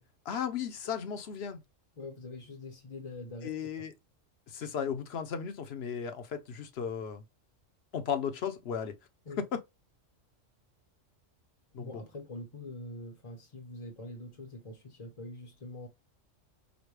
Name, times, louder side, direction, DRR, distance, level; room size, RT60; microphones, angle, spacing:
voice 1, 0.2-1.6 3.4-3.9 4.5-7.2 7.9-8.9 9.4-9.6 11.7-12.0, left 7 dB, 60° left, 0.9 m, -35 dB
voice 2, 2.0-3.7 9.3-9.4 11.8-15.9, left 2 dB, 35° left, 0.7 m, -44 dB
5.1 x 2.2 x 3.0 m
omnidirectional pair, 1.3 m